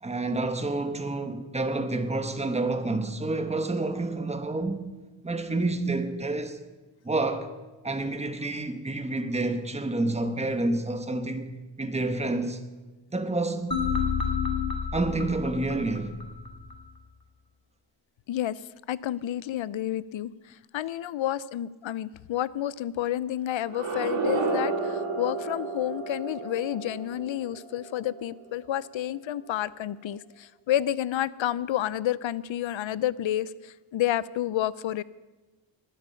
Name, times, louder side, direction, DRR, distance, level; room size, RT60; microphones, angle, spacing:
voice 1, 0.0-4.8 5.2-6.6 7.0-7.6 7.8-11.5 11.8-12.6 13.1-13.8 14.9-16.2, right 2 dB, 15° right, 1.1 m, -29 dB
sound 1, 13.7-16.8, left 6 dB, 45° left, 2.1 m, -30 dB
voice 2, 18.3-18.6 18.9-35.0, left 12 dB, 65° left, 0.6 m, -30 dB
sound 2, 23.6-28.5, right 3 dB, 70° right, 3.7 m, -32 dB
19.5 x 10.5 x 5.7 m
wide cardioid pair, 125°, 49 cm